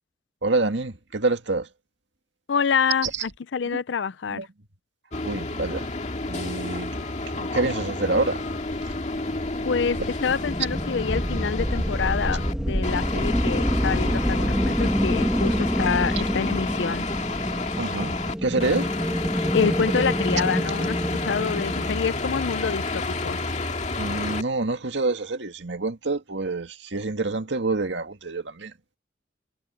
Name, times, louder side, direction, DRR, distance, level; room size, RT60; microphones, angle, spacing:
voice 1, 0.4-1.7 3.0-3.2 4.3-4.5 5.2-5.9 6.3-7.0 7.3-8.4 13.2-13.3 15.4-15.6 17.8-18.2 18.4-18.9 24.0-28.7, right 3 dB, 75° right, 2.0 m, -27 dB
voice 2, 2.5-4.5 9.6-17.1 19.5-23.4, left 6 dB, 75° left, 0.5 m, -27 dB
sound 1, 5.1-12.5 12.8-18.3 18.6-24.4, left 3 dB, 40° left, 2.0 m, -30 dB
sound 2, 8.6-22.0, equal, 5° right, 1.2 m, -27 dB
head